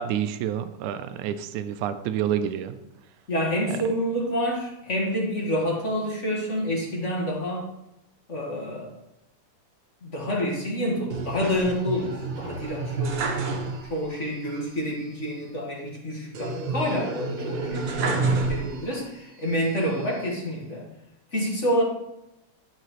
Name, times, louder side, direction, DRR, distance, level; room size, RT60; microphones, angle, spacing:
voice 1, 0.0-2.8, right 9 dB, 85° right, 10 dB, 2.1 m, -28 dB
voice 2, 3.3-7.6 8.3-8.9 10.0-13.6 13.8-20.9 21.3-21.8, equal, 30° left, -2 dB, 1.4 m, -28 dB
sound 1, 11.1-14.1 14.4-14.5 16.3-19.1 19.6-20.4, right 3 dB, 65° right, 1.2 m, -29 dB
11.5 x 6.8 x 3.1 m, 0.89 s
omnidirectional pair, 3.4 m